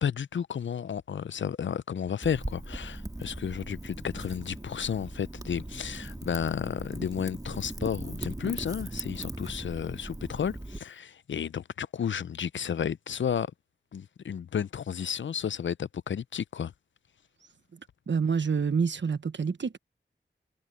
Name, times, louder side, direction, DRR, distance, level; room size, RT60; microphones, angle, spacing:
voice 1, 0.0-13.5 13.9-16.7, left 8 dB, 75° left, 0.5 m, -32 dB
Wind / Fire, 2.2-10.8, right 1 dB, 20° right, 1.9 m, -39 dB
voice 2, 18.1-19.8, right 5 dB, 70° right, 1.1 m, -27 dB
cardioid pair, 50°, 20 cm